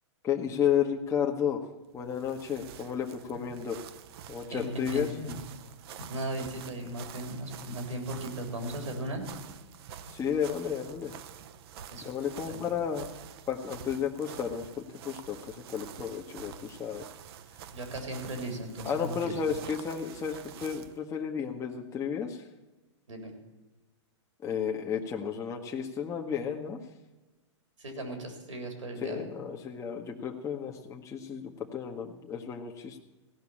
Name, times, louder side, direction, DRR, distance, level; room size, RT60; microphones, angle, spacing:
voice 1, 0.2-1.6 1.9-3.8 4.3-5.2 10.1-11.1 12.0-13.0 13.5-17.0 18.8-22.4 24.4-26.8 29.0-33.0, left 8 dB, 20° left, 1 dB, 1.1 m, -32 dB
sound 1, 1.9-21.0, right 8 dB, 55° right, 0.8 m, -47 dB
voice 2, 4.5-5.3 6.0-9.2 11.9-12.1 12.5-12.7 17.7-19.5 23.1-23.3 27.8-29.3, right 1 dB, 85° right, 4 dB, 3.7 m, -37 dB
16.0 x 5.9 x 8.6 m, 1.1 s
hypercardioid pair, 120°, 16 cm